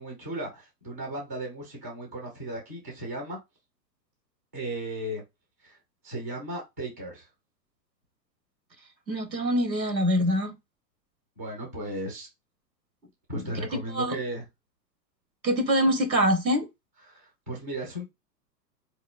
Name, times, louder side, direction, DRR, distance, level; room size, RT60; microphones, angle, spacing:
voice 1, 0.0-3.4 4.5-5.2 5.6-5.8 6.0-7.3 11.4-12.3 13.3-14.4 17.1-18.1, right 1 dB, 10° right, 0.3 m, -35 dB
voice 2, 9.1-10.6 13.3-13.5 13.9-14.2 15.4-16.7, equal, 90° right, 1.0 m, -24 dB
4.1 x 2.8 x 2.3 m
figure-of-eight pair, 105°, 50 cm